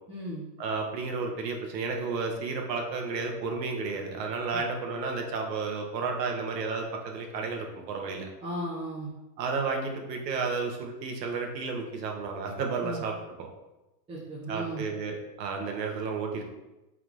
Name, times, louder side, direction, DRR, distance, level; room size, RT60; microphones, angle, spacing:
voice 1, 0.1-0.5 4.5-4.6 8.4-9.1 12.8-13.0 14.1-14.9, right 1 dB, 10° right, -9 dB, 0.7 m, -35 dB
voice 2, 0.6-8.3 9.4-13.5 14.5-16.4, right 4 dB, 80° right, 2 dB, 1.0 m, -32 dB
4.4 x 3.5 x 2.5 m, 1.0 s
supercardioid pair, 140°, 50 cm